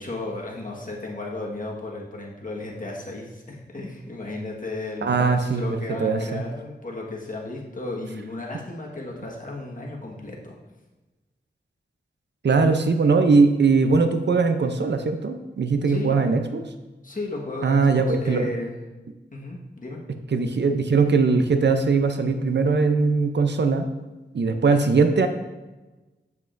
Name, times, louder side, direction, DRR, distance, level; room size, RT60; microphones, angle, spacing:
voice 1, 0.0-10.6 15.9-16.2 17.0-18.8 19.3-20.0, left 2 dB, 45° left, -2 dB, 1.5 m, -34 dB
voice 2, 5.0-6.4 12.4-16.6 17.6-18.5 20.3-23.9 24.3-25.3, right 4 dB, 70° right, 7 dB, 0.6 m, -20 dB
8.0 x 7.3 x 2.6 m, 1.2 s
wide cardioid pair, 65°, 19 cm